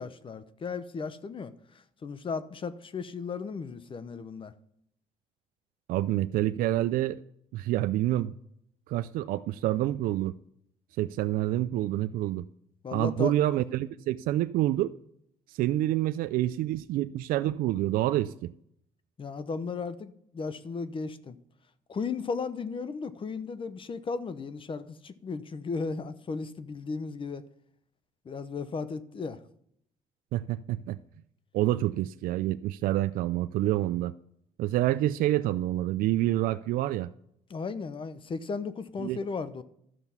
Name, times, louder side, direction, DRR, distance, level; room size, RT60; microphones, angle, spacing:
voice 1, 0.0-1.5 2.0-4.5 12.8-13.3 19.2-21.4 21.9-27.4 28.2-29.4 37.5-39.6, left 4 dB, 35° left, 13 dB, 0.8 m, -35 dB
voice 2, 5.9-7.2 7.5-8.3 8.9-10.3 11.0-12.4 12.9-14.9 15.5-18.5 30.3-31.0 31.5-34.1 34.6-37.1 39.0-39.2, right 14 dB, 85° right, 12 dB, 0.4 m, -27 dB
12.5 x 5.9 x 5.5 m, 0.70 s
cardioid pair, 95°, 14 cm